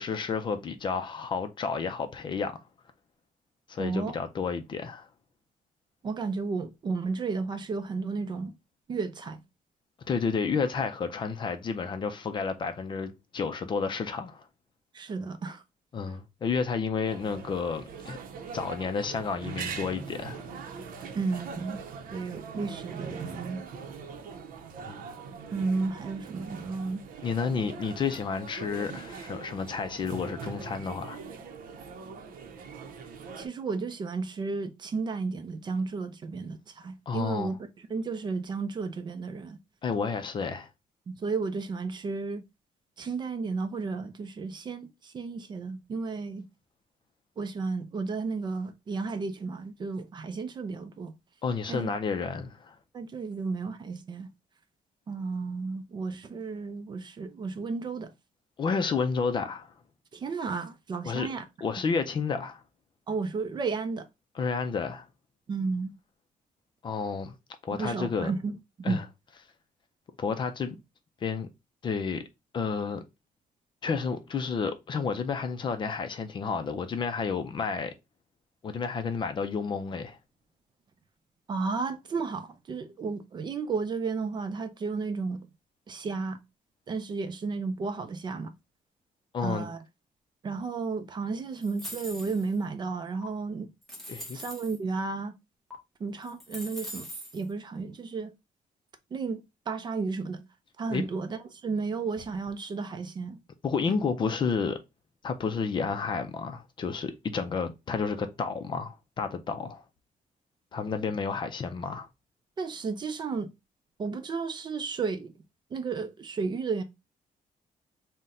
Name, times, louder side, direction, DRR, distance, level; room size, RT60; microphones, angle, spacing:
voice 1, 0.0-2.6 3.7-5.1 10.1-14.5 15.9-18.2 18.5-20.4 24.8-25.0 27.2-31.2 37.1-37.5 39.8-40.7 51.4-52.7 58.6-59.7 61.0-61.3 61.6-62.6 64.4-65.1 66.8-67.3 67.6-68.3 68.8-69.0 70.2-70.8 71.2-71.5 71.8-72.2 72.5-73.0 73.8-77.9 78.6-80.2 89.3-89.7 94.1-94.4 100.9-101.0 103.6-104.8 105.2-109.8 110.7-112.1, left 5 dB, 35° left, 0.4 m, -31 dB
voice 2, 3.8-4.2 6.0-8.5 8.9-9.4 14.9-15.6 21.1-21.8 22.1-23.6 25.5-27.0 33.3-37.6 37.9-39.6 41.1-42.4 43.0-46.5 47.4-51.1 51.7-51.9 52.9-54.3 55.1-58.1 60.1-61.4 63.1-64.1 65.5-65.9 67.7-68.5 68.8-69.0 81.5-85.5 85.9-86.4 86.9-88.5 89.4-89.8 90.4-93.7 94.3-95.3 96.0-97.1 97.3-98.3 99.1-100.4 100.8-103.4 112.6-113.5 114.0-115.3 115.7-116.8, right 4 dB, 35° right, 0.4 m, -33 dB
sound 1, 17.1-33.5, right 5 dB, 90° right, 0.6 m, -42 dB
sound 2, 91.6-92.6 93.2-93.3 93.8-94.8 95.7-95.8 96.2-97.4, equal, ahead, 1.0 m, -42 dB
3.8 x 2.1 x 4.1 m
cardioid pair, 180°, 14 cm